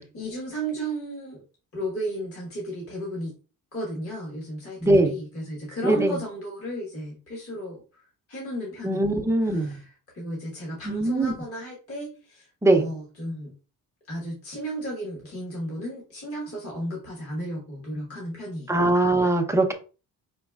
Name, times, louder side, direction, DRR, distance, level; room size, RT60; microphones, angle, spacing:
voice 1, 0.0-1.4 1.7-3.3 3.7-13.5 14.1-18.9, right 1 dB, 40° left, -3 dB, 1.4 m, -34 dB
voice 2, 4.8-5.1 5.8-6.2 8.8-9.8 10.9-11.3 12.6-12.9 18.7-19.7, right 2 dB, 10° right, 3 dB, 0.5 m, -21 dB
5.2 x 4.1 x 2.3 m, 0.34 s
wide cardioid pair, 175°, 36 cm